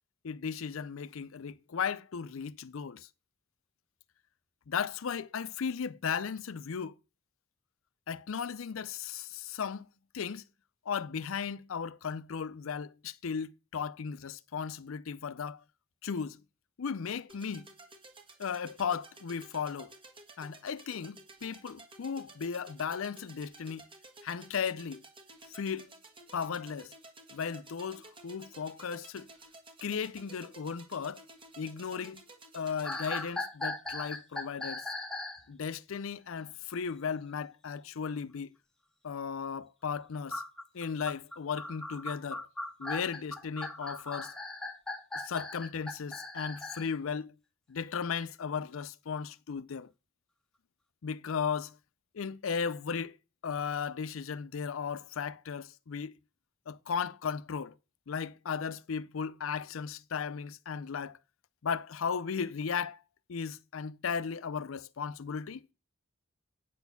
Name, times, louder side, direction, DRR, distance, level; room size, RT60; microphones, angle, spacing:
voice 1, 0.2-3.1 4.7-6.9 8.1-9.9 10.1-10.5 10.9-15.6 16.0-16.4 16.8-17.7 18.4-19.9 20.4-23.9 24.2-25.0 25.5-25.9 26.3-26.9 27.3-29.3 29.8-31.2 31.6-32.2 32.5-34.9 35.5-38.5 39.0-40.4 40.7-42.4 42.8-44.3 45.1-47.3 47.7-49.9 51.0-51.8 52.1-53.2 53.4-56.1 56.7-57.7 58.1-61.2 61.6-63.0 63.3-65.6, left 6 dB, 70° left, 0.5 m, -36 dB
sound 1, 17.3-33.3, right 2 dB, 25° right, 1.6 m, -54 dB
sound 2, 32.8-35.4 40.3-46.9, left 2 dB, 5° left, 1.5 m, -38 dB
9.0 x 4.2 x 7.0 m
head